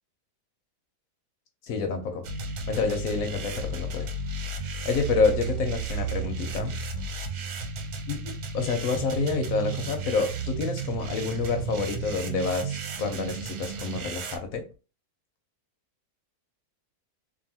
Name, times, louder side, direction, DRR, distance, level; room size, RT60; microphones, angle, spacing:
voice 1, 1.6-2.2 2.7-4.1 4.8-6.8 8.1-8.2 8.5-14.6, left 4 dB, 70° left, 5 dB, 0.9 m, -28 dB
sound 1, 2.2-14.4, right 4 dB, 80° right, 1.1 m, -33 dB
2.7 x 2.6 x 2.7 m, 0.34 s
omnidirectional pair, 1.6 m